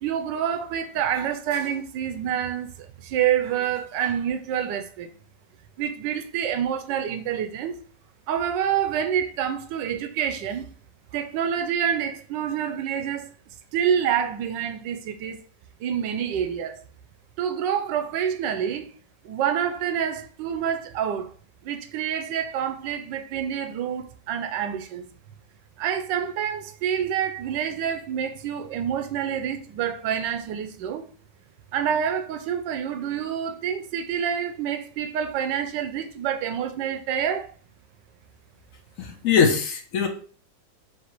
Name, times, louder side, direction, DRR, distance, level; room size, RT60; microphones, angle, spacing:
voice 1, 0.0-5.1 5.8-7.8 8.3-10.7 11.1-13.3 13.7-15.4 15.8-16.8 17.4-18.9 19.2-21.3 21.6-25.1 25.8-31.1 31.7-37.5, right 8 dB, 80° right, 1.2 m, -27 dB
voice 2, 39.0-40.1, left 6 dB, 65° left, 0.8 m, -21 dB
4.9 x 2.8 x 3.0 m
omnidirectional pair, 2.0 m